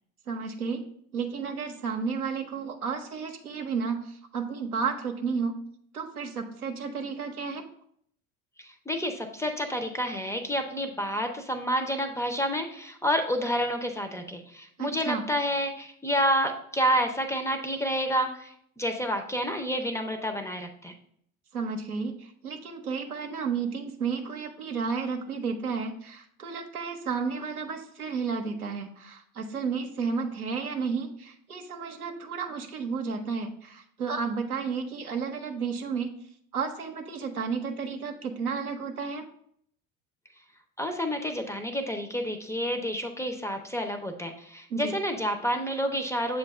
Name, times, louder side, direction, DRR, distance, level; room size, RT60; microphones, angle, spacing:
voice 1, 0.3-0.8 1.1-5.6 5.9-7.6 14.8-15.3 21.5-36.1 36.5-39.2 44.7-44.9, right 5 dB, 85° right, 4 dB, 0.7 m, -32 dB
voice 2, 8.6-20.9 40.8-46.4, equal, 5° left, 5 dB, 0.5 m, -29 dB
7.3 x 2.5 x 5.3 m, 0.66 s
figure-of-eight pair, 70°, 43 cm